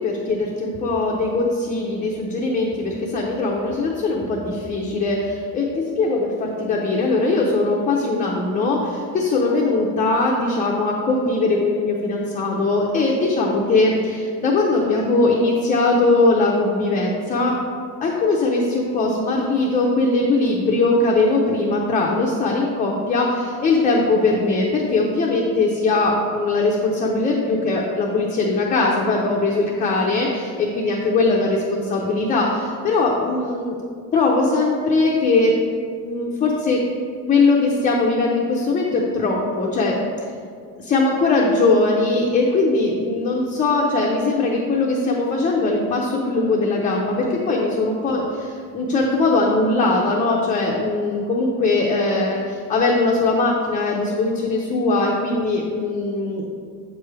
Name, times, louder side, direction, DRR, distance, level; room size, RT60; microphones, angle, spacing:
voice 1, 0.0-17.6 18.0-33.8 34.1-35.6 36.0-36.8 37.3-40.0 40.8-56.4, left 3 dB, 20° left, -2 dB, 0.4 m, -20 dB
7.3 x 3.1 x 4.6 m, 2.1 s
cardioid pair, 155°, 37 cm